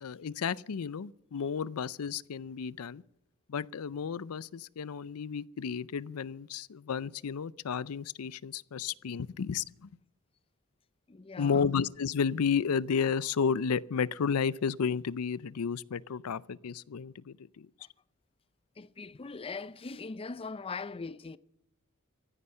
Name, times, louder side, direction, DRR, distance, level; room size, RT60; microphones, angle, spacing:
voice 1, 0.0-3.0 3.5-9.9 11.4-17.7, left 6 dB, 75° left, 0.5 m, -32 dB
voice 2, 11.1-11.7 17.8-17.9 18.8-21.4, left 4 dB, 25° left, 0.5 m, -41 dB
15.0 x 9.9 x 7.6 m
head